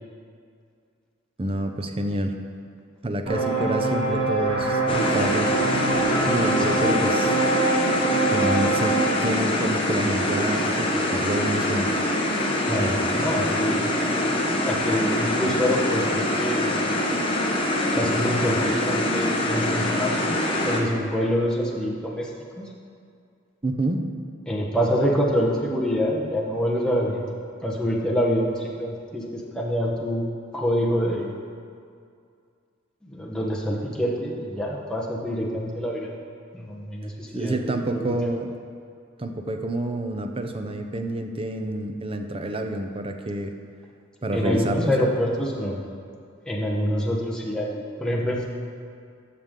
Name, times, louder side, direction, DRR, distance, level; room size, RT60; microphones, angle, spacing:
voice 1, 1.4-2.3 3.0-5.5 6.3-7.4 8.3-12.0 23.6-24.0 37.3-38.6 39.2-43.5 44.2-45.1, right 1 dB, 25° right, 5 dB, 0.6 m, -28 dB
sound 1, 3.2-9.1, right 3 dB, 70° right, 2.3 m, -24 dB
sound 2, 4.9-20.8, left 1 dB, 25° left, 0.9 m, -24 dB
voice 2, 12.7-14.2 14.7-16.8 17.9-20.4 20.6-22.3 22.6-22.7 24.5-27.3 27.6-30.2 30.5-31.3 33.0-36.1 36.5-38.2 44.3-45.8 46.5-48.5, equal, 5° left, -4 dB, 1.0 m, -26 dB
13.0 x 6.6 x 3.7 m, 2.3 s
head